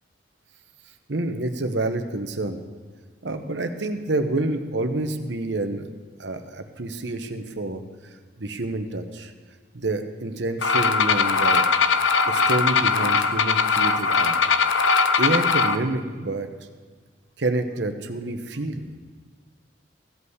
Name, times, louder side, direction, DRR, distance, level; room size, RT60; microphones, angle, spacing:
voice 1, 1.1-2.6 3.2-5.9 6.2-7.8 8.4-9.3 9.7-11.6 12.2-14.3 15.2-16.5 17.4-18.9, right 2 dB, 65° right, 7 dB, 1.0 m, -28 dB
sound 1, 10.6-15.8, left 5 dB, 80° left, 0.6 m, -20 dB
15.5 x 5.6 x 8.0 m, 1.5 s
head